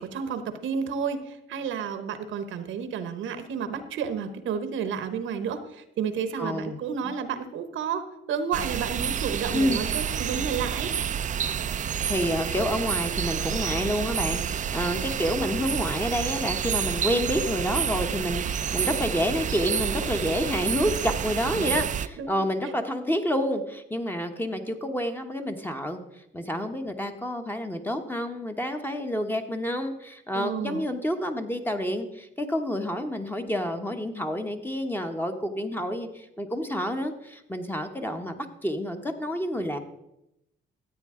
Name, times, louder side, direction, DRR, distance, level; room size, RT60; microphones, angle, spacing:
voice 1, 0.0-10.9 21.4-22.3 30.3-30.8, right 7 dB, 80° right, 10 dB, 1.0 m, -31 dB
voice 2, 6.4-6.8 7.0-7.1 9.5-9.8 12.0-26.0 26.3-39.8, equal, 10° left, 5 dB, 1.1 m, -29 dB
sound 1, 8.5-22.1, right 8 dB, 40° right, 0.4 m, -29 dB
13.5 x 8.4 x 3.7 m, 0.86 s
cardioid pair, 90°, 20 cm